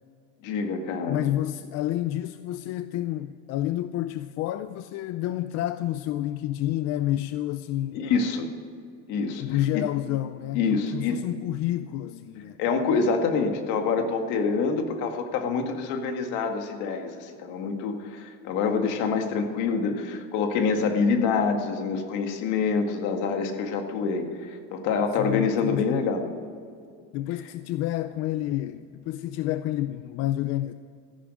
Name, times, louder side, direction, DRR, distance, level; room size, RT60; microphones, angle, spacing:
voice 1, 0.4-1.3 7.9-8.5 9.1-9.8 10.5-11.2 12.6-26.3, left 5 dB, 75° left, 1.9 m, -26 dB
voice 2, 1.1-8.1 9.3-12.6 25.2-26.1 27.1-30.7, left 13 dB, 55° left, 0.5 m, -29 dB
14.0 x 11.5 x 6.4 m
cardioid pair, 160°, 31 cm